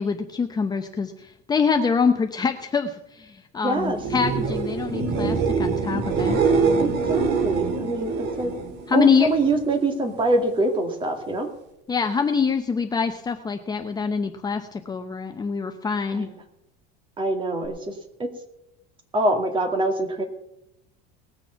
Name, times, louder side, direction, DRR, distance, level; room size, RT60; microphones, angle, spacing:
voice 1, 0.0-6.4 8.9-9.3 11.9-16.3, left 5 dB, 20° left, 5 dB, 0.8 m, -25 dB
voice 2, 3.6-4.0 6.8-8.5 8.9-11.5 16.1-16.3 17.2-17.8 19.1-20.2, right 2 dB, 25° right, 5 dB, 2.3 m, -24 dB
sound 1, 3.9-9.7 10.0-10.6 17.6-17.7, right 5 dB, 55° right, 2.3 m, -25 dB
19.5 x 6.9 x 5.8 m, 0.85 s
supercardioid pair, 125°, 21 cm